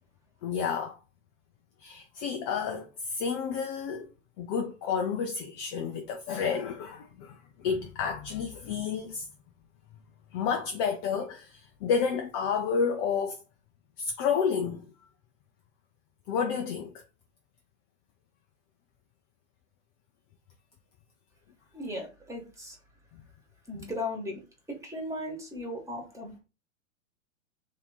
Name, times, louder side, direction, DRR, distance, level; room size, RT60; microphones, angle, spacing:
voice 1, 0.4-1.0 1.8-4.1 4.4-9.3 10.3-13.4 14.0-14.8 16.3-16.9 23.8-23.9, left 6 dB, 25° left, 0.4 m, -30 dB
voice 2, 21.7-22.8 23.7-24.4 24.7-26.4, left 1 dB, 10° right, 1.3 m, -37 dB
3.6 x 2.7 x 4.1 m
hypercardioid pair, 110°, 39 cm